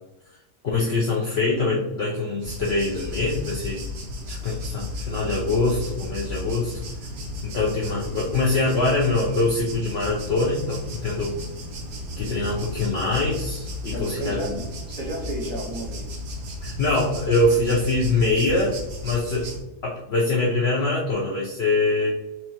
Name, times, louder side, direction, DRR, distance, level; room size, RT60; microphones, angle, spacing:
voice 1, 0.6-3.9 4.3-6.7 7.4-11.4 12.2-14.6 16.6-18.8 19.0-19.5 19.8-22.1, left 2 dB, 80° left, -3 dB, 0.5 m, -24 dB
sound 1, 2.4-19.6, left 1 dB, 80° right, 1.4 m, -34 dB
voice 2, 13.9-16.2, right 1 dB, 5° left, -7 dB, 1.2 m, -32 dB
4.6 x 2.7 x 2.8 m, 1.0 s
omnidirectional pair, 1.8 m